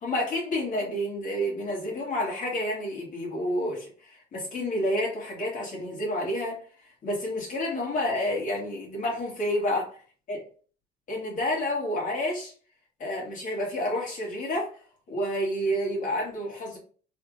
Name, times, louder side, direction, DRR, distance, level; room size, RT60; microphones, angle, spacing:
voice 1, 0.0-6.6 7.0-9.9 10.3-10.4 11.1-12.5 13.0-14.8 15.1-16.8, left 1 dB, 50° left, -1 dB, 1.7 m, -29 dB
3.4 x 2.5 x 3.1 m, 0.40 s
cardioid pair, 110°, 17 cm